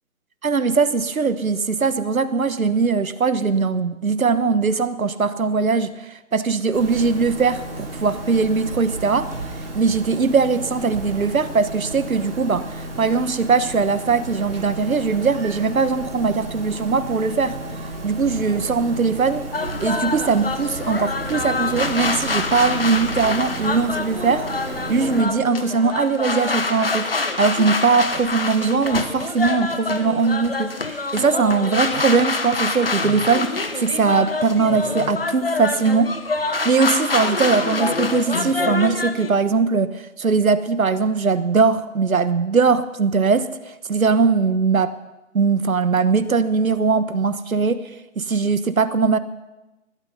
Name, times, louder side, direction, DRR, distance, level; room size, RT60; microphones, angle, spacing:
voice 1, 0.4-9.3 9.7-17.6 18.0-19.5 19.8-24.5 24.9-36.1 36.4-44.9 45.3-47.8 48.2-49.2, right 4 dB, 70° right, 12 dB, 1.3 m, -20 dB
sound 1, 6.7-25.2, right 1 dB, 40° right, 3.1 m, -33 dB
sound 2, 19.5-39.3, left 3 dB, 40° left, 1.1 m, -26 dB
20.0 x 12.5 x 5.6 m, 1.0 s
hypercardioid pair, 180°, 42 cm